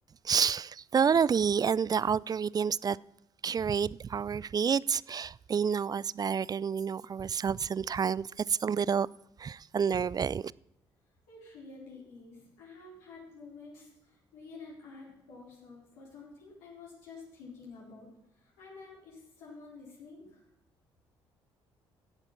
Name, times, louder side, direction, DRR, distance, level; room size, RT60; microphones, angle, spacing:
voice 1, 0.2-3.0 3.4-9.1 9.4-10.5, right 6 dB, 30° right, 0.3 m, -29 dB
voice 2, 11.3-18.1 18.3-20.4, left 4 dB, 70° left, 4.6 m, -50 dB
15.5 x 8.0 x 5.7 m
hypercardioid pair, 50°, 13 cm